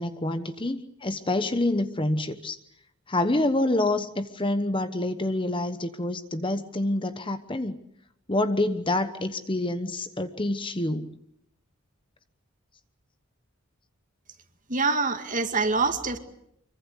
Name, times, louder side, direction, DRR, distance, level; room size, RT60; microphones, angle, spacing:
voice 1, 0.0-2.6 3.1-7.8 8.3-11.2, left 1 dB, 25° left, 10 dB, 1.0 m, -27 dB
voice 2, 14.7-16.2, right 4 dB, 35° right, 7 dB, 2.2 m, -25 dB
26.0 x 23.5 x 8.2 m, 0.75 s
head